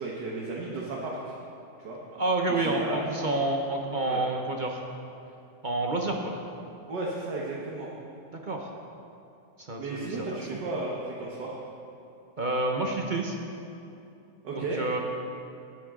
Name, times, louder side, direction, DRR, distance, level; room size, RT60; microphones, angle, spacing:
voice 1, 0.0-1.3 1.8-2.0 2.6-3.1 4.1-4.2 6.9-7.9 9.8-11.6 14.4-14.8, right 3 dB, 70° right, -4 dB, 1.9 m, -34 dB
voice 2, 2.1-4.8 5.6-6.3 8.3-8.7 9.6-10.3 12.4-13.4 14.5-15.0, right 2 dB, 40° right, 1 dB, 0.7 m, -29 dB
18.5 x 8.8 x 3.8 m, 2.6 s
omnidirectional pair, 1.9 m